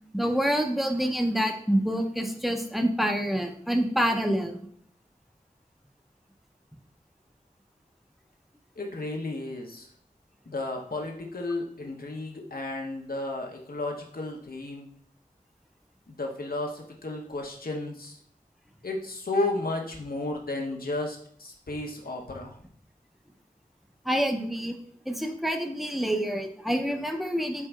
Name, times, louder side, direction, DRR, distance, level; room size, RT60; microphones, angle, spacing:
voice 1, 0.1-4.6 24.1-24.8 25.1-27.7, equal, ahead, 5 dB, 0.5 m, -27 dB
voice 2, 8.8-9.9 10.5-14.9 16.1-18.2 18.8-22.6, left 2 dB, 80° left, 1 dB, 0.8 m, -33 dB
4.5 x 4.0 x 2.3 m, 0.62 s
wide cardioid pair, 45°, 15 cm